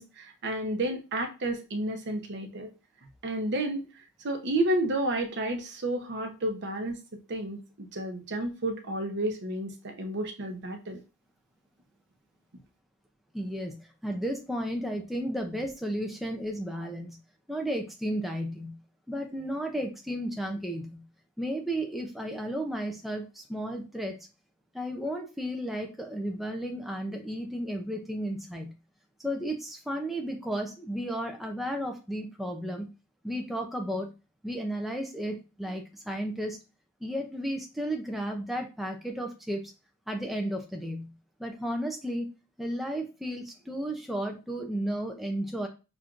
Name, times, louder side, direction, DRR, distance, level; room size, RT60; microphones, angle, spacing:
voice 1, 0.0-2.7 3.2-3.9 4.2-7.0 7.3-11.0, right 1 dB, 50° right, 5 dB, 0.7 m, -31 dB
voice 2, 13.3-17.2 17.5-18.8 19.1-21.0 21.4-24.2 24.7-28.7 29.2-32.9 33.2-34.1 34.4-36.6 37.0-39.7 40.1-41.1 41.4-42.3 42.6-45.7, equal, ahead, 2 dB, 0.4 m, -33 dB
5.8 x 2.5 x 2.4 m, 0.30 s
head